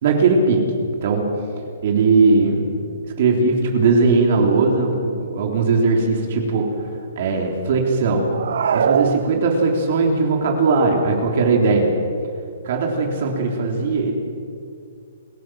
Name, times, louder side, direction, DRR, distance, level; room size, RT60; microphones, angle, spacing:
voice 1, 0.0-0.7 1.0-1.3 1.8-2.7 3.0-6.7 7.2-8.3 8.7-11.9 12.6-14.1, right 4 dB, 50° right, 1 dB, 3.5 m, -19 dB
sound 1, 8.3-9.9, right 7 dB, 70° right, 0.9 m, -22 dB
28.5 x 15.5 x 7.6 m, 2.3 s
hypercardioid pair, 160°, 0 cm